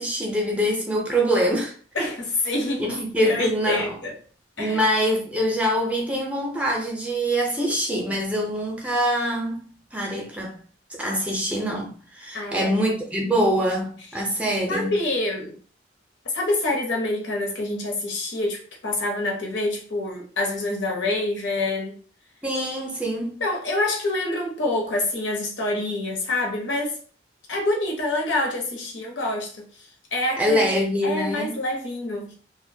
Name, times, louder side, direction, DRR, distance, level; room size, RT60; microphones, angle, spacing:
voice 1, 0.0-1.7 2.8-3.9 4.6-10.6 11.0-15.0 22.4-23.4 30.4-31.6, equal, 5° right, 0.5 m, -24 dB
voice 2, 1.9-4.1 4.6-4.8 12.3-12.7 14.7-15.6 16.2-22.0 23.4-27.0 27.5-30.7 31.0-32.3, left 2 dB, 85° left, 0.8 m, -26 dB
2.4 x 2.1 x 2.6 m
head